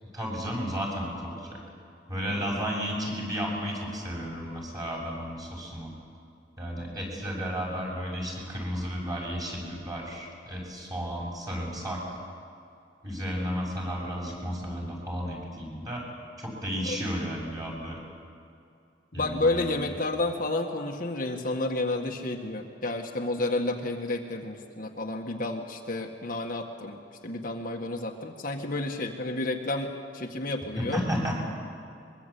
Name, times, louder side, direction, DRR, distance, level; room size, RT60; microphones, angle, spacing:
voice 1, 0.1-1.6 2.1-5.9 6.6-12.0 13.0-16.0 16.4-18.0 19.1-19.8 30.8-31.4, equal, 20° right, -2 dB, 6.9 m, -33 dB
voice 2, 2.3-2.6 16.8-17.0 19.2-31.0, left 2 dB, 50° left, 1 dB, 1.8 m, -31 dB
23.0 x 23.0 x 8.5 m, 2.5 s
head